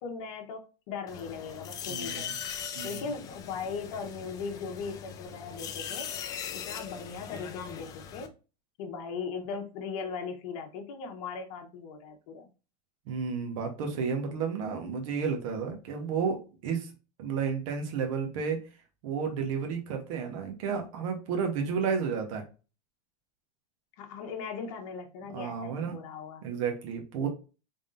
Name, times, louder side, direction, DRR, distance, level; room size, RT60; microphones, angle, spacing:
voice 1, 0.0-2.4 2.8-6.1 6.5-8.3 8.8-12.5 24.0-26.4 27.2-27.3, left 5 dB, 50° left, 3 dB, 1.1 m, -38 dB
sound 1, 1.1-8.3, left 8 dB, 20° left, 0.3 m, -40 dB
voice 2, 1.9-2.3 2.7-3.0 13.1-16.9 17.2-18.6 19.0-22.4 25.3-25.9 26.4-27.3, right 6 dB, 55° right, 3 dB, 1.1 m, -32 dB
3.7 x 3.6 x 2.5 m, 0.33 s
supercardioid pair, 160°, 21 cm